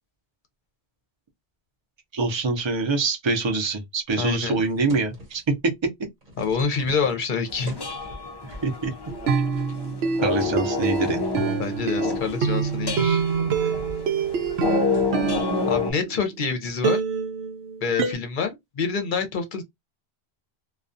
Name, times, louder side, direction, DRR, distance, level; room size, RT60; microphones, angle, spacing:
voice 1, 2.1-5.4 8.6-8.9 10.2-11.3, right 3 dB, 30° right, 0.6 m, -25 dB
voice 2, 4.2-4.6 6.4-7.7 11.6-13.2 15.7-17.0 17.8-19.6, left 5 dB, 55° left, 0.8 m, -26 dB
sound 1, 4.6-5.6 6.0-8.3 9.3-9.8 10.2-10.3 10.9-12.3 15.2-15.5, left 1 dB, 50° right, 1.1 m, -44 dB
sound 2, 7.5-15.9, left 4 dB, 35° left, 0.4 m, -29 dB
sound 3, 9.1-16.4 16.8-18.1, right 5 dB, 75° right, 0.8 m, -26 dB
2.3 x 2.3 x 2.5 m
omnidirectional pair, 1.1 m